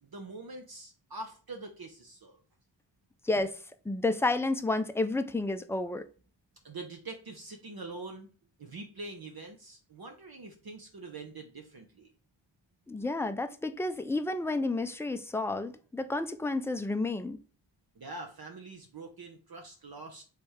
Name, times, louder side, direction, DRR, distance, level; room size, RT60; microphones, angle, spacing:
voice 1, 0.0-2.4 6.6-8.3 8.6-12.1 17.9-20.2, right 3 dB, 55° right, 0.8 m, -44 dB
voice 2, 3.2-3.6 3.9-6.1 12.9-17.4, left 2 dB, 5° left, 0.3 m, -31 dB
3.4 x 3.3 x 4.3 m
wide cardioid pair, 90°, 44 cm